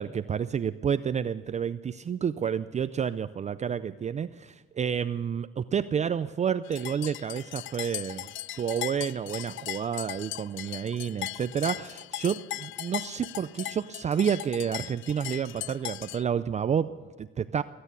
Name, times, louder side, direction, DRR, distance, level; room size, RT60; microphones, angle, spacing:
voice 1, 0.0-8.3 8.5-17.6, right 7 dB, 35° right, 13 dB, 0.4 m, -30 dB
sound 1, 6.7-16.2, left 14 dB, 75° left, 0.4 m, -38 dB
19.5 x 9.7 x 6.8 m, 1.3 s
cardioid pair, 90°, 20 cm